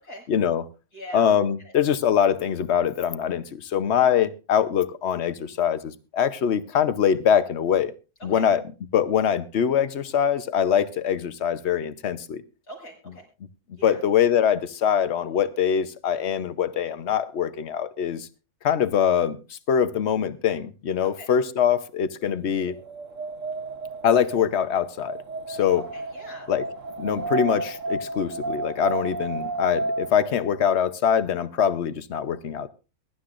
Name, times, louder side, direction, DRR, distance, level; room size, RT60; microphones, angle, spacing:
voice 1, 0.3-0.6 1.1-7.9 8.2-8.6 8.9-12.4 13.8-18.3 18.6-22.7 24.0-25.2 25.5-25.8 26.5-26.6 27.0-32.7, left 8 dB, 50° left, 1.0 m, -23 dB
voice 2, 0.9-1.3 1.6-1.7 8.2-8.4 12.6-13.2 13.8-14.0 21.0-21.3 25.7-26.5, equal, 85° left, 6.3 m, -42 dB
Wind, 22.4-30.3, right 3 dB, 60° right, 1.2 m, -32 dB
22.5 x 11.5 x 2.5 m
omnidirectional pair, 1.6 m